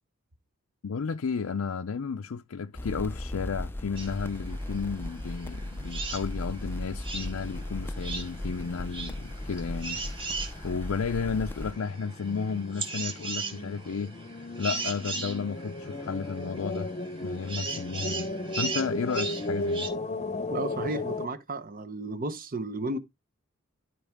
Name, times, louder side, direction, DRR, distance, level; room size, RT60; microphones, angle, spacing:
voice 1, 0.8-10.0 10.6-14.1 14.6-16.9 17.2-18.3 18.6-19.9, left 5 dB, 90° left, 0.5 m, -33 dB
sound 1, 2.7-11.7, left 1 dB, 10° left, 0.5 m, -37 dB
sound 2, 4.0-19.9, right 3 dB, 25° right, 1.7 m, -38 dB
sound 3, 7.2-21.3, left 2 dB, 35° left, 0.8 m, -37 dB
voice 2, 20.5-23.0, right 2 dB, 45° right, 1.0 m, -33 dB
12.5 x 4.7 x 3.5 m
head